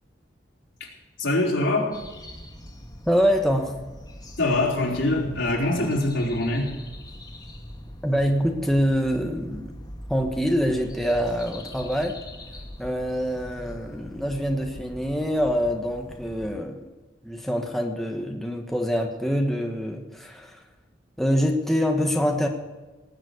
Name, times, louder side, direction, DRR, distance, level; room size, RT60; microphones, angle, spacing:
voice 1, 1.2-1.9 4.4-6.7, left 2 dB, 80° left, -3 dB, 4.3 m, -24 dB
sound 1, 1.9-16.6, equal, 20° left, 2.2 m, -42 dB
voice 2, 3.1-3.8 8.0-9.7 10.1-12.2 12.8-16.8 17.2-20.6 21.2-22.5, equal, ahead, 2 dB, 1.3 m, -25 dB
19.0 x 7.3 x 8.3 m, 1.2 s
head